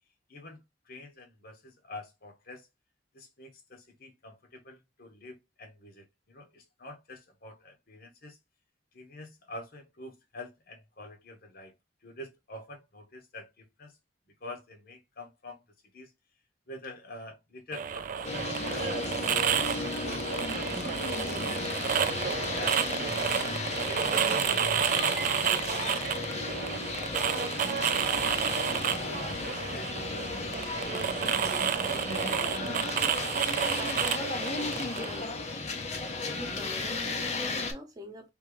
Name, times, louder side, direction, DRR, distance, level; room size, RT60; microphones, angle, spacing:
voice 1, 0.3-2.7 3.1-8.4 8.9-11.7 12.0-14.0 14.3-15.6 15.9-16.1 16.7-18.3 18.7-19.7 20.3-22.1 22.5-26.2 26.5-27.4 28.0-28.6 29.0-30.6, left 2 dB, 55° left, 1.1 m, -47 dB
sound 1, 17.7-35.2, right 8 dB, 45° right, 0.3 m, -30 dB
sound 2, 18.2-37.7, left 3 dB, 40° left, 0.7 m, -34 dB
voice 2, 34.1-35.5 36.3-38.3, equal, 20° right, 1.0 m, -44 dB
3.5 x 2.9 x 3.0 m
head